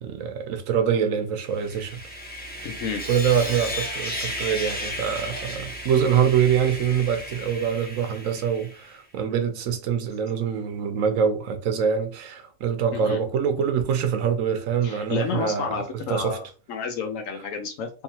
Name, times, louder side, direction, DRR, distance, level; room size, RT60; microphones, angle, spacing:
voice 1, 0.0-2.0 3.1-16.4, right 7 dB, 70° right, 1.0 m, -24 dB
Sawing, 1.5-8.9, equal, 10° left, 0.6 m, -34 dB
voice 2, 2.6-3.0 12.9-13.2 14.8-17.9, left 5 dB, 75° left, 1.0 m, -31 dB
3.4 x 3.1 x 2.8 m
omnidirectional pair, 1.5 m